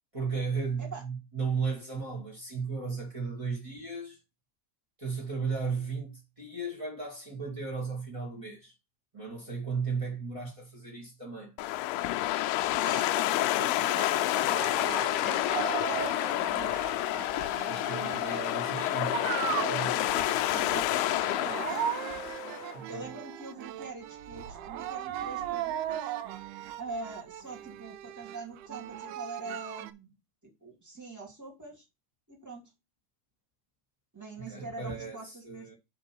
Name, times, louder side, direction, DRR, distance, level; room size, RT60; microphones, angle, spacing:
voice 1, 0.1-4.2 5.0-8.7 9.1-11.5 17.6-20.2 22.7-23.1 34.4-35.7, right 5 dB, 40° right, 0.4 m, -35 dB
sound 1, 11.6-22.8, left 15 dB, 85° left, 2.2 m, -29 dB
voice 2, 12.7-16.7 20.7-21.8 22.9-26.1 26.8-30.1 30.6-31.8 32.3-32.6 34.1-35.7, right 3 dB, 10° right, 0.9 m, -43 dB
sound 2, 14.1-29.9, right 11 dB, 80° right, 2.4 m, -38 dB
5.3 x 5.2 x 6.0 m
omnidirectional pair, 5.0 m